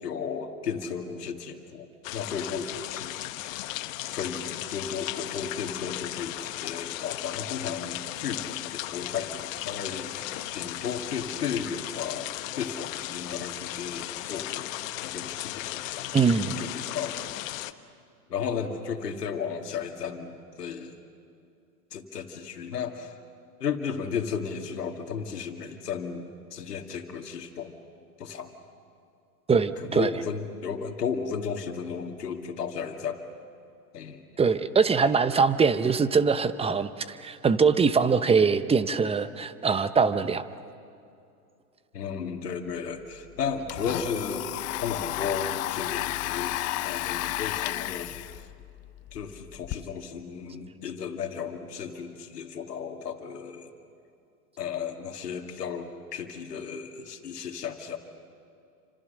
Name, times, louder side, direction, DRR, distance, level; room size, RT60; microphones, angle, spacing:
voice 1, 0.0-3.1 3.4-3.7 4.1-14.7 15.0-16.2 16.6-17.5 18.3-21.0 21.9-23.2 23.6-27.7 28.2-28.5 29.8-33.2 33.9-34.2 41.9-44.5 44.8-46.5 46.8-48.1 48.4-48.5 49.1-53.7 54.6-58.0, left 6 dB, 80° left, 4 dB, 2.4 m, -34 dB
Rain Fountain Splashes Far Away, 2.0-17.7, left 16 dB, 55° left, 1.2 m, -36 dB
voice 2, 16.1-16.6 29.5-30.1 34.4-40.4, right 5 dB, 15° right, 13 dB, 0.9 m, -23 dB
Domestic sounds home sounds, 42.8-42.9 43.1-49.8, left 16 dB, 35° left, 0.7 m, -33 dB
29.5 x 26.5 x 6.6 m, 2.5 s
hypercardioid pair, 105°, 47 cm